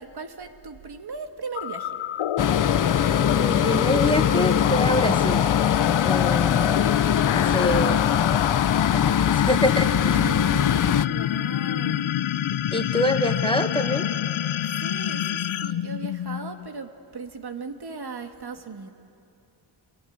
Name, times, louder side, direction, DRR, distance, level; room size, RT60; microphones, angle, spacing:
voice 1, 0.0-2.0 10.1-12.1 14.8-18.9, right 4 dB, 55° right, 6 dB, 1.8 m, -37 dB
sound 1, 1.5-16.7, left 11 dB, 85° left, 0.7 m, -27 dB
sound 2, 2.4-11.1, left 8 dB, 45° left, 0.6 m, -22 dB
voice 2, 3.2-5.5 6.0-6.8 7.3-8.0 8.7-10.2 12.7-14.1, left 1 dB, 10° left, 6 dB, 1.4 m, -26 dB
27.5 x 23.0 x 9.3 m, 2.6 s
cardioid pair, 70°, 46 cm